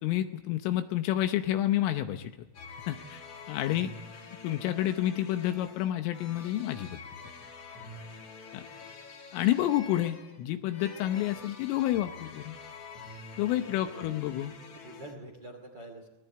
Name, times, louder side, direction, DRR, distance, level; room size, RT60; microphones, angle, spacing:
voice 1, 0.0-2.3 2.9-3.2 3.5-3.9 4.4-7.0 8.5-8.7 9.3-12.6 13.4-14.5, left 13 dB, 80° left, 7 dB, 3.3 m, -29 dB
sound 1, 2.5-15.1, left 4 dB, 45° left, 2.2 m, -47 dB
voice 2, 13.7-14.1 14.7-16.1, right 1 dB, 35° right, 5 dB, 1.8 m, -46 dB
25.0 x 19.5 x 8.1 m, 1.1 s
omnidirectional pair, 5.9 m